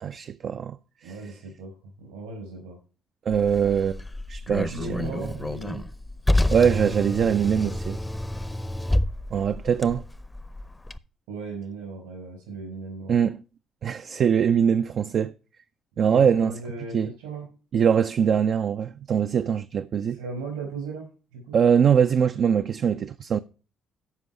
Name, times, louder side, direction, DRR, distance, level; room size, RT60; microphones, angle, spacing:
voice 1, 0.0-0.8 1.0-1.1 3.3-4.0 4.3-4.8 6.5-8.0 9.3-10.0 13.1-13.4 13.8-15.3 16.0-16.5 16.9-17.1 17.7-20.2 21.5-23.4, right 7 dB, 55° right, 0.4 m, -22 dB
voice 2, 1.0-1.7 2.0-2.8 4.5-5.9 11.3-13.1 16.1-17.5 20.1-21.0 21.3-21.5, right 3 dB, 75° right, 5.2 m, -37 dB
Car, 3.3-11.0, left 1 dB, 10° left, 0.6 m, -29 dB
13.0 x 5.3 x 4.7 m
figure-of-eight pair, 45°, 0 cm